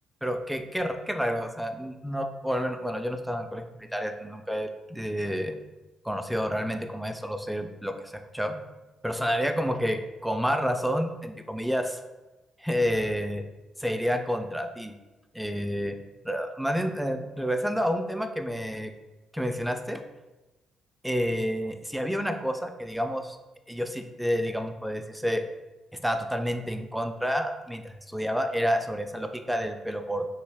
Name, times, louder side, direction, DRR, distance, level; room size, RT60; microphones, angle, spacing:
voice 1, 0.2-5.5 6.0-8.5 9.0-12.0 12.6-13.4 13.8-14.9 15.3-16.0 16.2-18.9 19.3-20.0 21.0-23.4 23.7-25.4 26.0-30.3, equal, ahead, 6 dB, 0.3 m, -29 dB
3.1 x 2.5 x 3.3 m, 1.1 s
cardioid pair, 90°, 0 cm